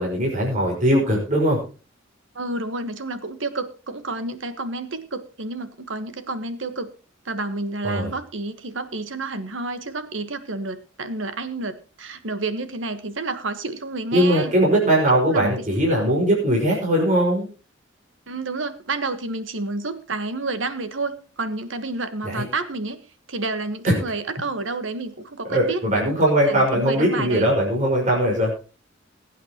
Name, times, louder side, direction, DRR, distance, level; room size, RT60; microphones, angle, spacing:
voice 1, 0.0-1.6 7.8-8.1 14.1-17.5 22.2-22.5 23.8-23.9 25.5-28.5, right 1 dB, 40° right, -2 dB, 5.3 m, -20 dB
voice 2, 2.3-6.9 7.2-14.5 15.2-15.7 18.3-23.0 23.3-25.8 26.1-26.2 26.5-27.5, right 3 dB, 70° right, 10 dB, 1.4 m, -30 dB
22.0 x 9.1 x 3.0 m, 0.36 s
head